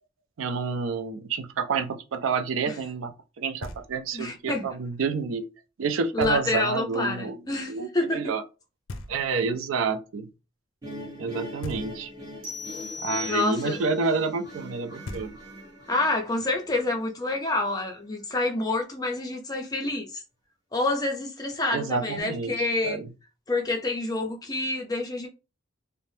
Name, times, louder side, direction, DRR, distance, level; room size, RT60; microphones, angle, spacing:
voice 1, 0.4-5.4 5.8-8.4 9.1-10.3 11.2-12.1 13.0-15.4 21.7-22.5 22.8-23.1, right 5 dB, 90° right, 0.4 m, -29 dB
Knock, 3.6-4.3 6.2-6.9 8.9-9.7 11.6-12.4 14.7-14.8 15.0-15.9, left 2 dB, 85° left, 0.4 m, -41 dB
voice 2, 4.1-4.7 6.1-8.3 13.2-13.8 15.9-20.2 20.7-23.0 23.5-25.3, left 2 dB, 20° left, 0.4 m, -28 dB
sound 1, 10.8-17.9, equal, 20° right, 0.9 m, -43 dB
sound 2, 12.4-14.0, left 2 dB, 45° right, 1.2 m, -37 dB
3.2 x 2.0 x 2.6 m
head